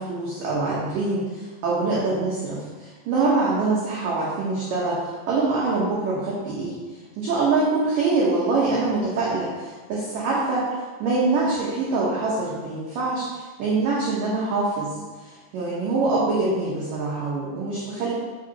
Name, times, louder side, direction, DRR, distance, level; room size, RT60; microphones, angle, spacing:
voice 1, 0.0-6.8 7.2-10.7 11.0-14.9 15.2-18.1, right 3 dB, 80° right, -6 dB, 1.9 m, -24 dB
8.1 x 6.6 x 2.9 m, 1.3 s
omnidirectional pair, 5.4 m